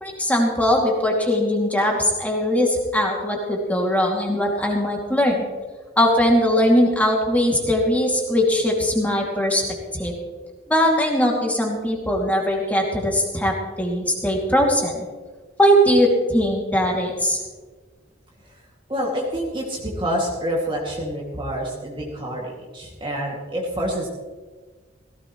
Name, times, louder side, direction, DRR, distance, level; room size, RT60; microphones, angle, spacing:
voice 1, 0.0-5.5 6.0-9.6 9.9-10.1 10.7-15.1 15.6-17.4, equal, 10° left, -1 dB, 2.4 m, -20 dB
voice 2, 18.9-24.1, equal, 25° right, -3 dB, 2.3 m, -27 dB
17.0 x 16.5 x 3.1 m, 1.4 s
head